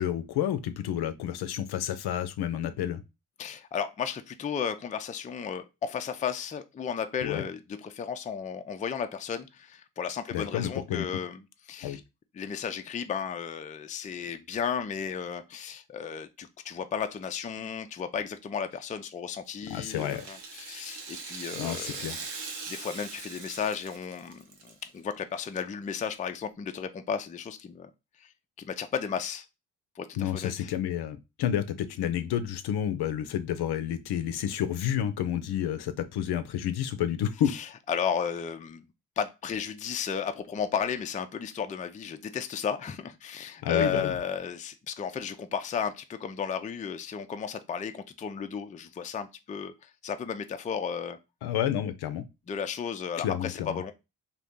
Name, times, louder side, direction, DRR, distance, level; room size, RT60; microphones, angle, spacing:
voice 1, 0.0-3.0 7.2-7.4 10.3-11.1 11.8-12.0 19.7-20.2 21.5-22.2 30.2-37.5 43.6-44.1 51.4-52.2 53.2-53.8, left 10 dB, 65° left, 0.6 m, -30 dB
voice 2, 3.4-11.4 11.7-12.0 12.3-22.0 22.7-27.9 28.2-28.3 28.6-29.5 30.0-30.7 37.5-38.8 39.2-51.2 52.5-53.9, left 7 dB, 20° left, 0.4 m, -34 dB
Rattle (instrument), 19.6-24.9 25.2-25.3 26.1-26.2, right 4 dB, 75° right, 0.9 m, -41 dB
2.7 x 2.5 x 3.5 m
hypercardioid pair, 45°, 42 cm